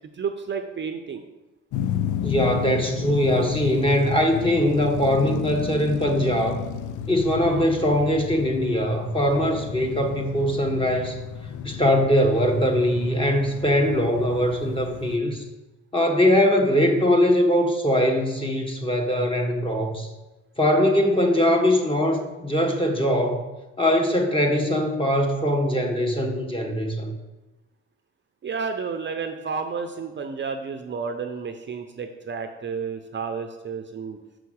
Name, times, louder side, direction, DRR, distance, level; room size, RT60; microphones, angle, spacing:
voice 1, 0.1-1.2 28.4-34.2, right 5 dB, 40° right, 6 dB, 0.7 m, -31 dB
sound 1, 1.7-15.2, left 9 dB, 80° left, 0.6 m, -32 dB
voice 2, 2.2-6.6 7.1-11.2 11.6-15.4 15.9-20.1 20.6-23.4 23.8-27.1, equal, 15° left, 2 dB, 1.5 m, -21 dB
6.3 x 5.8 x 6.4 m, 1.1 s
cardioid pair, 90°, 30 cm